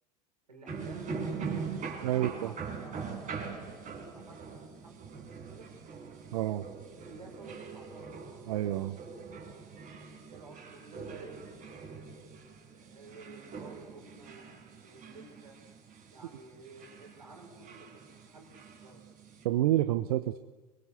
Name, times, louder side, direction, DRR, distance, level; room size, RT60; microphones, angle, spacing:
voice 1, 0.5-1.6 2.1-5.7 7.0-8.2 10.3-11.5 12.6-15.6 16.1-19.0, right 3 dB, 85° right, 1 dB, 5.8 m, -53 dB
sound 1, 0.7-19.4, right 5 dB, 40° right, 4.8 m, -43 dB
voice 2, 2.0-2.5 6.3-6.6 8.5-9.0 19.4-20.4, right 14 dB, 65° right, 11 dB, 0.9 m, -28 dB
25.0 x 22.5 x 8.1 m, 1.2 s
figure-of-eight pair, 70°, 20 cm